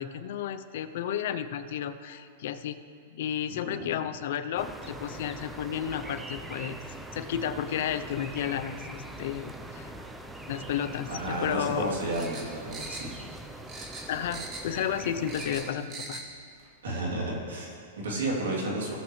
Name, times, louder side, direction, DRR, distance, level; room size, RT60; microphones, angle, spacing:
voice 1, 0.0-2.8 3.1-6.8 7.1-9.9 10.5-11.9 14.1-16.2, left 9 dB, 65° left, 11 dB, 0.6 m, -32 dB
voice 2, 3.5-4.0 11.1-12.4 12.6-13.1 16.8-18.9, right 2 dB, 85° right, -3 dB, 2.9 m, -32 dB
sound 1, 4.6-15.7, right 1 dB, 5° right, 0.6 m, -42 dB
sound 2, 12.1-13.4 13.7-14.8 15.1-16.3 16.6-16.7, right 3 dB, 30° right, 1.7 m, -41 dB
17.5 x 7.1 x 3.2 m, 2.4 s
hypercardioid pair, 135°, 0 cm